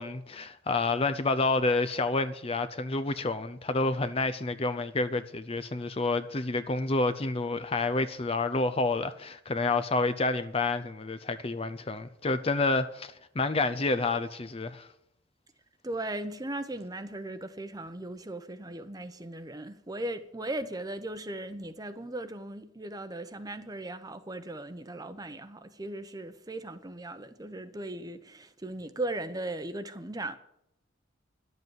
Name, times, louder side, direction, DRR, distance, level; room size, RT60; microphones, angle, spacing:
voice 1, 0.0-14.9, left 3 dB, 30° left, 0.6 m, -29 dB
voice 2, 15.8-30.4, right 1 dB, 20° right, 0.8 m, -38 dB
11.5 x 7.9 x 9.2 m
head